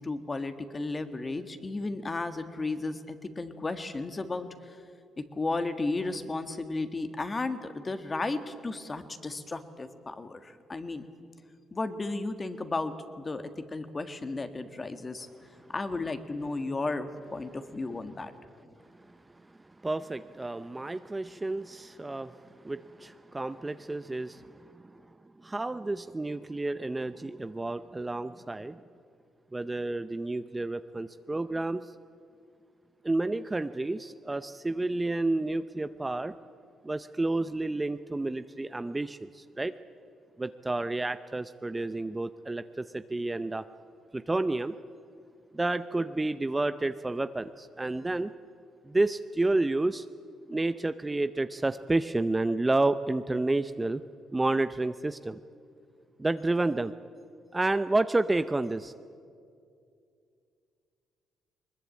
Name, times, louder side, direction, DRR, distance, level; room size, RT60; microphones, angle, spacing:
voice 1, 0.0-4.8 5.2-11.0 11.7-15.3 15.7-18.3, left 3 dB, 25° left, 9 dB, 1.7 m, -34 dB
voice 2, 19.8-25.0 25.4-28.8 29.5-31.9 33.0-36.3 36.8-39.7 40.4-43.7 44.1-44.7 45.5-48.3 48.8-50.1 50.5-54.0 54.3-55.4 56.2-56.9 57.5-58.9, right 2 dB, 15° right, 11 dB, 0.6 m, -30 dB
21.0 x 21.0 x 8.6 m, 2.4 s
cardioid pair, 90°, 0 cm